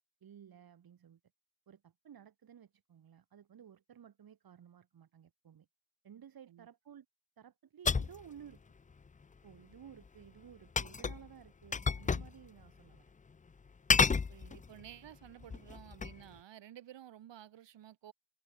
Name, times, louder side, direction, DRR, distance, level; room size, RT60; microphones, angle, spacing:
voice 1, 0.2-1.2 1.7-5.7 6.0-7.1 7.4-8.6 9.4-13.0, right 9 dB, 55° right, 7.9 m, -55 dB
sound 1, 7.8-8.2 10.8-11.3 11.7-12.3 12.6-12.7 13.9-14.8 15.4-16.2, left 5 dB, 20° left, 0.5 m, -30 dB
voice 2, 14.3-18.1, right 11 dB, 80° right, 6.8 m, -53 dB
wide cardioid pair, 155°, 43 cm